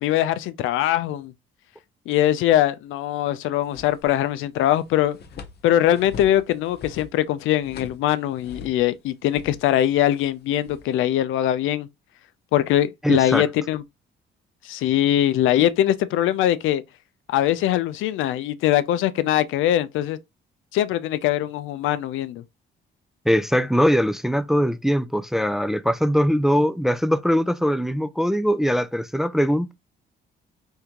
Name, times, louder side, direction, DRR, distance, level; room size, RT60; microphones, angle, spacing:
voice 1, 0.0-1.3 2.1-5.2 5.6-11.9 12.5-13.8 14.6-16.8 17.3-20.2 20.7-22.4, left 12 dB, 85° left, 0.4 m, -22 dB
sound 1, 3.6-4.4 4.7-9.0 9.3-11.0, left 5 dB, 55° left, 0.7 m, -43 dB
voice 2, 13.0-13.5 23.3-29.7, equal, ahead, 0.3 m, -21 dB
3.6 x 3.5 x 2.8 m
cardioid pair, 90°, 20 cm